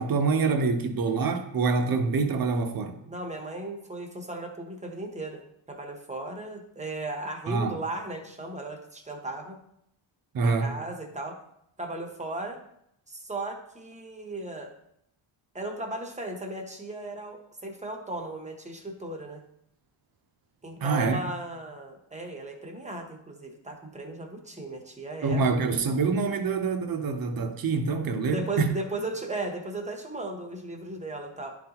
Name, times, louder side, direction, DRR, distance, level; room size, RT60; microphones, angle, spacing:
voice 1, 0.0-3.0 7.5-7.8 10.3-10.7 20.8-21.2 25.2-28.7, right 4 dB, 45° right, 0.8 m, -26 dB
voice 2, 3.0-5.4 5.7-9.6 10.4-11.4 11.8-12.6 13.1-14.7 15.5-19.4 20.6-25.4 28.3-31.6, right 2 dB, 15° right, 0.8 m, -36 dB
11.5 x 3.9 x 2.9 m
wide cardioid pair, 160°, 48 cm